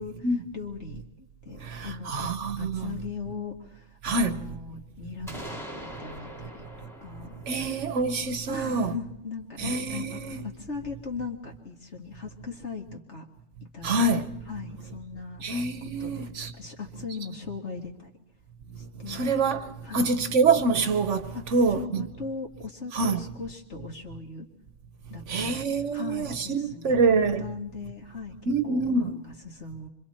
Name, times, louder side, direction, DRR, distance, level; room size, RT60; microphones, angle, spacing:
voice 1, 0.0-2.3 2.6-6.6 7.0-7.7 8.5-13.2 13.6-14.0 14.5-15.4 16.0-16.2 16.5-18.1 18.8-19.3 19.8-20.1 21.3-21.4 21.7-24.5 25.1-25.6 25.9-29.9, left 5 dB, 55° left, 2.5 m, -39 dB
voice 2, 2.1-2.9 4.0-4.4 7.5-8.9 9.6-10.4 13.8-14.2 15.4-16.5 19.1-19.6 19.9-21.2 21.5-22.0 22.9-23.2 25.3-27.5 28.5-29.0, right 3 dB, 65° right, 1.3 m, -25 dB
sound 1, 5.3-9.1, right 1 dB, ahead, 2.4 m, -43 dB
26.5 x 25.0 x 4.4 m
omnidirectional pair, 1.4 m